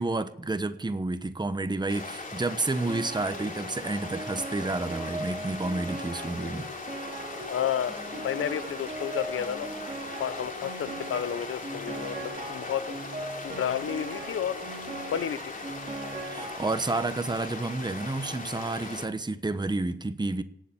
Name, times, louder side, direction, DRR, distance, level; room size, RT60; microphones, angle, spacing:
voice 1, 0.0-6.7 16.3-20.4, right 2 dB, 20° right, 1.1 m, -30 dB
sound 1, 1.9-19.1, left 3 dB, 40° left, 3.1 m, -39 dB
Piano, 2.9-17.3, right 2 dB, 35° right, 3.6 m, -39 dB
voice 2, 7.3-12.9 13.4-14.6 15.1-15.4, left 9 dB, 80° left, 0.8 m, -32 dB
18.0 x 7.1 x 7.1 m
cardioid pair, 55°, 21 cm